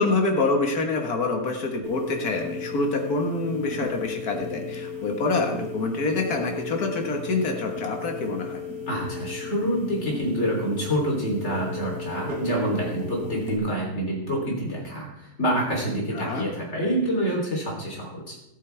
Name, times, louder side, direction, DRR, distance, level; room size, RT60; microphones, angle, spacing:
voice 1, 0.0-8.6 16.1-16.5, left 3 dB, 70° left, 2 dB, 2.1 m, -26 dB
sound 1, 1.8-13.6, left 3 dB, 65° right, 2.2 m, -35 dB
voice 2, 8.9-18.4, right 1 dB, 45° left, -1 dB, 3.9 m, -27 dB
14.0 x 13.0 x 3.5 m, 0.86 s
omnidirectional pair, 1.7 m